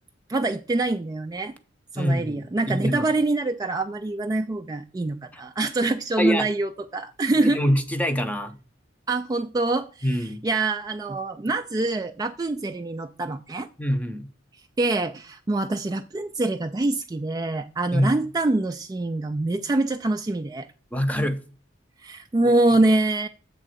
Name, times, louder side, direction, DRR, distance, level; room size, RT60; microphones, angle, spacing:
voice 1, 0.3-1.5 1.9-7.6 9.1-10.1 10.4-13.7 14.8-20.7 22.0-23.3, right 2 dB, 20° right, 0.3 m, -25 dB
voice 2, 1.9-3.1 5.3-5.4 6.2-6.5 7.4-8.6 10.0-10.4 13.8-14.3 17.9-18.2 20.9-21.4 22.4-22.5, equal, 10° left, 0.7 m, -25 dB
7.7 x 3.6 x 6.4 m
head